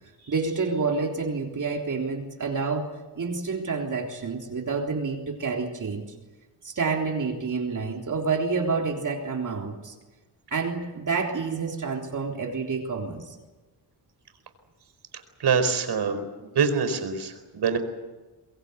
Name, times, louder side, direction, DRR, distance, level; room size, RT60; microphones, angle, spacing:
voice 1, 0.3-6.0 6.6-9.9 10.5-13.4, right 4 dB, 45° right, 1 dB, 3.7 m, -28 dB
voice 2, 15.4-16.2 16.5-17.8, right 6 dB, 65° right, 8 dB, 4.6 m, -24 dB
24.5 x 21.5 x 8.2 m, 1.2 s
cardioid pair, 110°, 42 cm